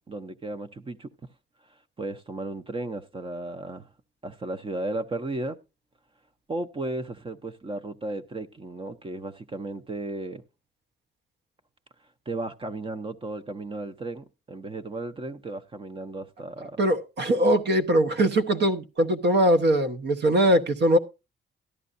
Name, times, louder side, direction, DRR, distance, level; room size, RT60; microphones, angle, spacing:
voice 1, 0.1-1.3 1.7-3.9 4.2-5.6 6.5-10.4 12.3-16.8, right 2 dB, 25° right, 0.7 m, -35 dB
voice 2, 16.8-21.0, right 1 dB, 60° right, 1.1 m, -21 dB
14.0 x 11.0 x 2.5 m
cardioid pair, 125°, 19 cm